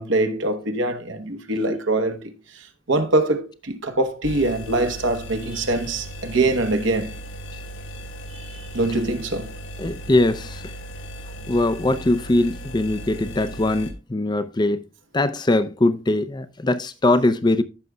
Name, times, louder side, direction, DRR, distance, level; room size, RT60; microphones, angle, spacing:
voice 1, 0.0-2.3 2.9-7.1 8.3-9.5, right 2 dB, 70° right, 1.0 m, -23 dB
sound 1, 4.2-13.9, equal, 75° left, 1.8 m, -37 dB
voice 2, 9.8-10.6 11.5-14.8 15.1-17.6, left 2 dB, 20° left, 0.5 m, -21 dB
14.5 x 6.2 x 2.2 m
head